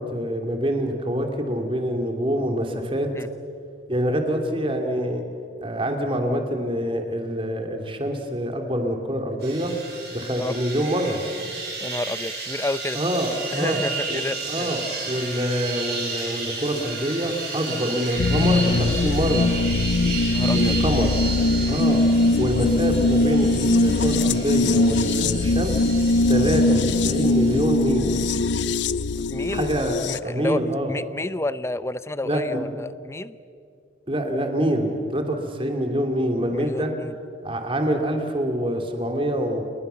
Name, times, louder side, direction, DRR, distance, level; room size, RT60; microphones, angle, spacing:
voice 1, 0.0-3.1 3.9-5.2 5.6-9.7 10.1-11.2 12.9-13.3 13.6-13.8 14.1-14.2 14.5-14.8 15.1-19.5 20.5-21.1 21.7-22.0 22.4-25.8 26.3-28.2 29.5-30.0 30.2-30.9 32.2-32.6 34.1-36.9 37.4-39.6, equal, 30° right, 4 dB, 2.9 m, -25 dB
sound 1, 9.4-27.6, right 3 dB, 65° right, 7.8 m, -33 dB
voice 2, 11.8-13.0 13.5-14.7 20.3-20.7 21.6-21.8 29.3-29.7 30.1-30.6 30.9-33.4 36.5-37.2, left 2 dB, 15° left, 15 dB, 0.6 m, -30 dB
sound 2, 18.2-30.2, left 2 dB, 80° left, 0.6 m, -21 dB
29.5 x 21.5 x 7.0 m, 2.4 s
head